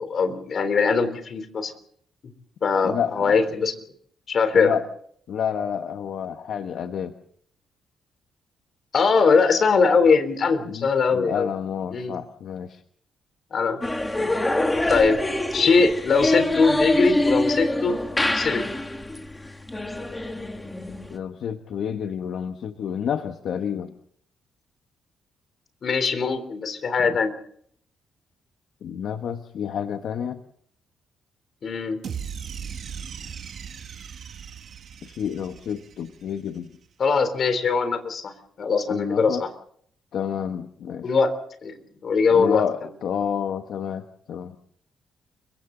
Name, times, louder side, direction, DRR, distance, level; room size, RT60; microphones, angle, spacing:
voice 1, 0.0-1.7 2.6-3.7 4.3-4.8 8.9-11.5 11.9-12.2 13.5-13.8 14.9-15.2 15.5-18.0 18.3-18.6 25.8-27.3 31.6-32.0 37.0-38.3 38.6-39.5 41.0-41.3 41.6-41.7 42.0-42.6, left 4 dB, 40° left, 9 dB, 3.5 m, -21 dB
voice 2, 2.8-3.4 4.5-4.8 5.3-7.1 10.7-12.8 21.1-23.9 27.0-27.2 28.8-30.4 35.0-36.7 38.9-39.4 40.1-41.1 42.3-44.5, left 8 dB, 60° left, 7 dB, 1.3 m, -29 dB
sound 1, 13.8-21.2, left 1 dB, 10° left, 2.0 m, -25 dB
sound 2, 32.0-36.4, right 7 dB, 50° right, 2.0 m, -38 dB
30.0 x 24.0 x 4.0 m, 0.63 s
cardioid pair, 155°, 0 cm